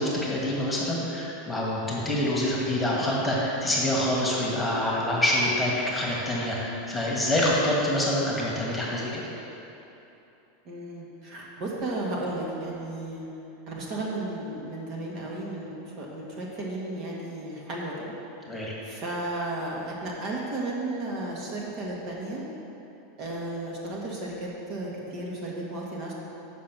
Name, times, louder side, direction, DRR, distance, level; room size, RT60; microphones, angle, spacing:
voice 1, 0.0-9.2 18.5-18.7, left 1 dB, 10° left, -4 dB, 1.6 m, -26 dB
voice 2, 10.6-13.3 13.7-17.9 18.8-22.5 23.2-26.1, right 2 dB, 45° right, -3 dB, 1.7 m, -34 dB
7.3 x 5.6 x 6.0 m, 3.0 s
supercardioid pair, 125°, 0 cm